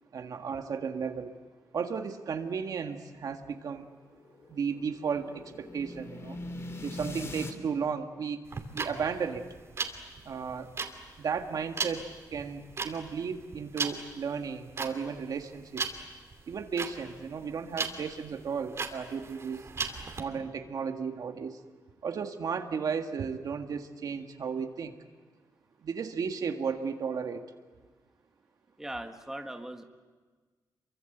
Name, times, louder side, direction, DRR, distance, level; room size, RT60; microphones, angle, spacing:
voice 1, 0.1-1.3 1.7-3.9 4.5-6.4 6.8-8.4 8.7-9.5 10.3-10.7 11.2-15.9 16.5-19.6 20.1-21.6 22.0-25.0 25.8-27.5, right 6 dB, 65° right, 5 dB, 1.8 m, -34 dB
sound 1, 4.2-7.5, left 2 dB, 40° left, 2.8 m, -41 dB
sound 2, 8.4-20.2, right 4 dB, 40° right, 2.7 m, -37 dB
voice 2, 28.8-29.8, right 1 dB, 5° right, 5 dB, 1.5 m, -39 dB
28.0 x 24.0 x 8.0 m, 1.4 s
wide cardioid pair, 135°, 7 cm